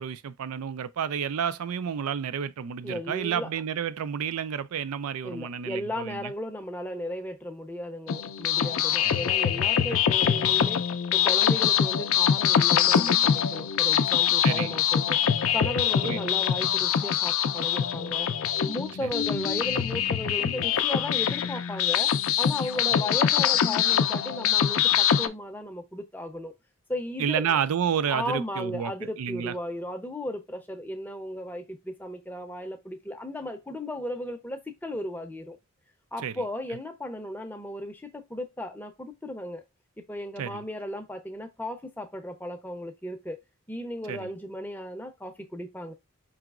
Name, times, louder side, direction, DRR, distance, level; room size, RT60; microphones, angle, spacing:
voice 1, 0.0-6.3 9.0-9.2 14.4-14.7 16.0-16.2 19.0-19.1 27.2-28.9 29.2-29.5 36.2-36.3 40.4-40.6 44.1-44.3, right 8 dB, 90° right, 0.4 m, -30 dB
voice 2, 2.8-3.5 5.2-10.8 11.1-15.2 15.5-18.3 18.7-26.5 26.9-27.6 28.1-35.6 36.1-39.6 40.1-43.4 43.7-45.9, left 1 dB, 10° left, 0.5 m, -35 dB
sound 1, 8.1-25.3, left 9 dB, 70° left, 0.4 m, -24 dB
4.8 x 2.9 x 2.4 m
head